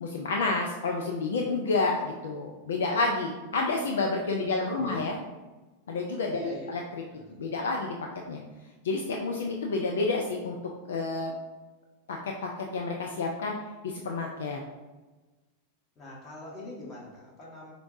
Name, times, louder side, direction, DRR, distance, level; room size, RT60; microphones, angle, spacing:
voice 1, 0.0-5.2 5.9-7.0 7.4-8.0 8.3-8.4 8.8-10.6 10.9-11.3 12.1-13.5 13.8-14.6, left 3 dB, 65° left, 1 dB, 0.3 m, -29 dB
voice 2, 6.3-6.7 7.1-7.4 16.0-17.7, left 1 dB, 25° left, -5 dB, 1.2 m, -43 dB
4.3 x 2.6 x 2.6 m, 1.2 s
figure-of-eight pair, 90°, 0 cm